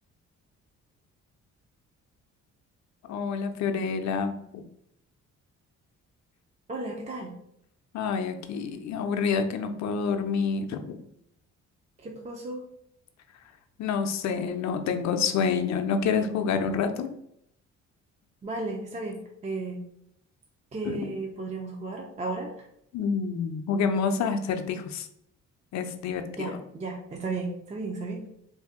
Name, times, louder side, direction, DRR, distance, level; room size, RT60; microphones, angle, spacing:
voice 1, 3.1-4.6 7.9-11.0 13.8-17.1 20.9-21.0 22.9-25.1 25.7-26.6, left 5 dB, 65° left, 7 dB, 0.5 m, -28 dB
voice 2, 6.7-7.3 12.0-12.7 18.4-19.8 20.7-22.7 26.3-28.2, right 3 dB, 25° right, 1 dB, 0.4 m, -34 dB
2.7 x 2.6 x 3.6 m, 0.73 s
cardioid pair, 90°, 30 cm